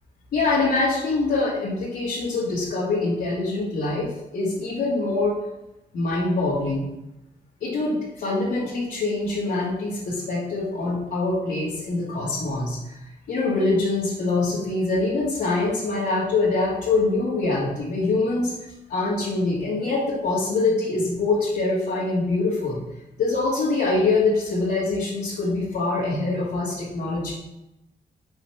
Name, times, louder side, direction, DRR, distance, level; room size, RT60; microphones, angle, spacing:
voice 1, 0.3-5.4 5.9-6.8 7.6-13.0 13.3-18.5 18.9-22.8 23.2-27.3, left 3 dB, 85° left, -9 dB, 1.9 m, -24 dB
5.6 x 4.1 x 5.7 m, 0.91 s
cardioid pair, 85°, 16 cm